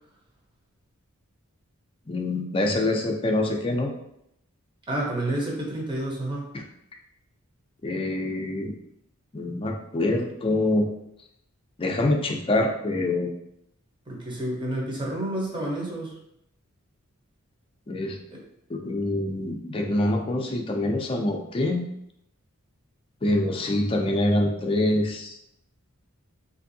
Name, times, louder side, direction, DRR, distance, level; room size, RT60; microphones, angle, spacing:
voice 1, 2.1-3.9 6.5-6.6 7.8-8.7 9.3-10.9 11.8-13.4 17.9-18.2 18.7-21.8 23.2-25.4, left 1 dB, 25° left, 2 dB, 0.4 m, -25 dB
voice 2, 4.9-6.5 14.1-16.1 18.3-18.4, right 1 dB, 20° right, -3 dB, 0.8 m, -29 dB
3.4 x 2.6 x 2.6 m, 0.78 s
head